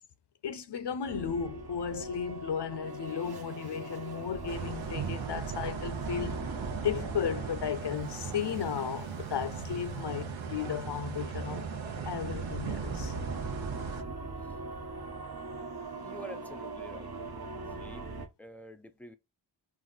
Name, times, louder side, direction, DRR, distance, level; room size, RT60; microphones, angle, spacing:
voice 1, 0.4-6.4 6.8-11.7 12.0-13.1, left 8 dB, 60° left, 0.7 m, -35 dB
sound 1, 1.1-18.3, right 3 dB, 50° right, 1.1 m, -41 dB
sound 2, 4.5-14.0, right 6 dB, 75° right, 0.9 m, -39 dB
voice 2, 16.0-17.1 17.8-19.1, left 1 dB, 5° left, 0.5 m, -48 dB
4.6 x 2.5 x 3.9 m
wide cardioid pair, 95°, 48 cm